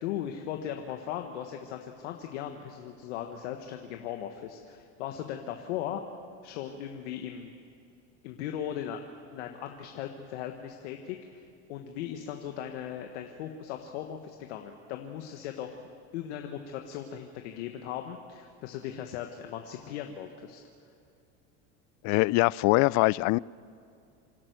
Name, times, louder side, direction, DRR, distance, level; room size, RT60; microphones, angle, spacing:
voice 1, 0.0-6.0 6.4-7.5 8.2-9.0 9.3-11.4 11.7-15.8 16.1-20.6, left 10 dB, 80° left, 4 dB, 1.5 m, -38 dB
voice 2, 22.0-23.4, left 23 dB, 55° left, 23 dB, 0.4 m, -23 dB
27.0 x 12.0 x 9.4 m, 2.6 s
supercardioid pair, 95°, 34 cm